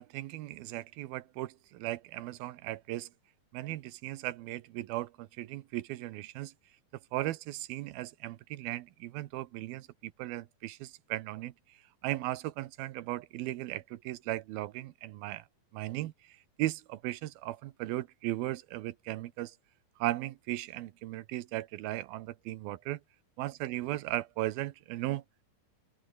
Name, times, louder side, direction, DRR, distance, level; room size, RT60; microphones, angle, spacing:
voice 1, 0.0-3.1 3.5-6.5 7.1-11.5 12.0-15.4 15.7-19.6 20.0-23.0 23.4-25.2, right 16 dB, 90° right, 2.8 m, -37 dB
open air
omnidirectional pair, 4.3 m